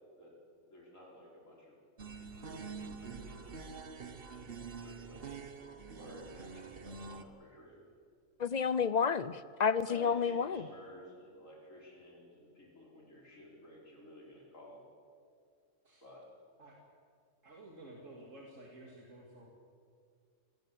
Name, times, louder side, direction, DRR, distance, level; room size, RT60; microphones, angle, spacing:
voice 1, 0.6-1.8 2.4-4.0 4.3-5.4 6.0-7.8 9.9-14.8 16.0-16.2, left 1 dB, 85° left, -3 dB, 5.6 m, -53 dB
sound 1, 2.0-7.2, right 5 dB, 50° right, 1.3 m, -46 dB
voice 2, 8.4-10.7, left 6 dB, 45° left, 16 dB, 0.6 m, -30 dB
voice 3, 17.4-19.5, right 1 dB, 75° right, -2 dB, 3.1 m, -52 dB
27.0 x 19.0 x 7.8 m, 2.3 s
omnidirectional pair, 1.3 m